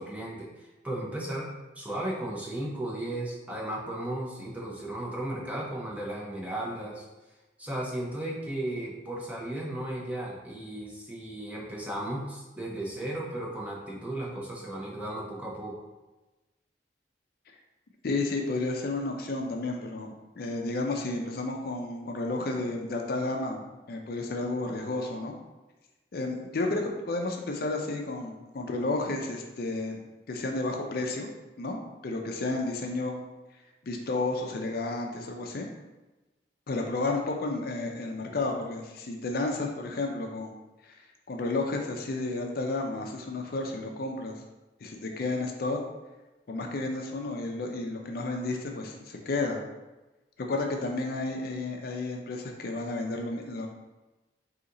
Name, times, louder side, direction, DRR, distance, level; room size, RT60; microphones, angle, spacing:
voice 1, 0.0-1.5 1.8-7.0 7.6-15.8, right 1 dB, 10° right, -4 dB, 0.8 m, -35 dB
voice 2, 18.0-23.6 23.9-25.3 26.1-30.0 30.3-31.3 31.6-31.8 32.0-33.2 33.8-35.7 36.7-40.5 40.8-40.9 41.3-44.4 44.8-45.8 46.5-49.6 50.4-53.7, left 2 dB, 60° left, 2 dB, 0.5 m, -32 dB
4.0 x 2.8 x 3.8 m, 1.1 s
head